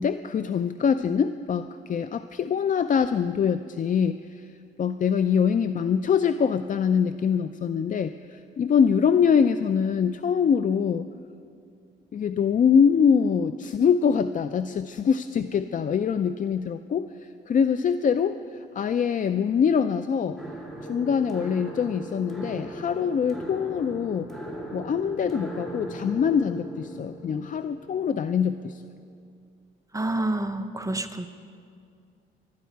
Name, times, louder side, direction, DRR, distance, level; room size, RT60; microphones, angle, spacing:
voice 1, 0.0-4.5 4.8-11.1 12.1-20.4 20.9-24.3 24.7-28.8, left 7 dB, 40° left, 11 dB, 0.5 m, -24 dB
sound 1, 20.4-29.2, right 1 dB, ahead, 2.3 m, -39 dB
voice 2, 29.9-31.3, right 1 dB, 15° right, 7 dB, 0.7 m, -28 dB
25.0 x 12.5 x 4.6 m, 2.4 s
cardioid pair, 90°, 20 cm